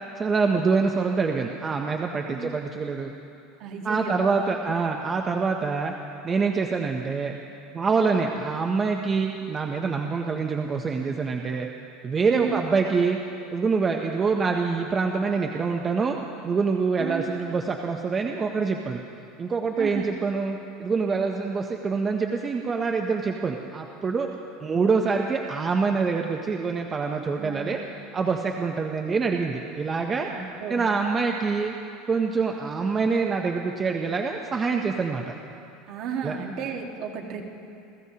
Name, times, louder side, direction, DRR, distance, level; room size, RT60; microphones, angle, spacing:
voice 1, 0.2-3.1 3.8-5.9 6.2-7.4 7.7-11.7 12.0-13.2 13.5-16.2 16.4-19.0 19.4-24.3 24.6-27.8 28.1-30.3 30.7-31.7 32.1-35.3 36.2-36.4, right 4 dB, 15° right, 3 dB, 0.5 m, -25 dB
voice 2, 3.6-4.6 7.9-8.2 12.3-12.6 17.0-17.3 19.8-20.1 27.4-27.8 30.3-30.8 35.9-37.4, right 6 dB, 45° right, 1 dB, 1.5 m, -34 dB
29.5 x 14.5 x 2.8 m, 2.6 s
cardioid pair, 175°, 0 cm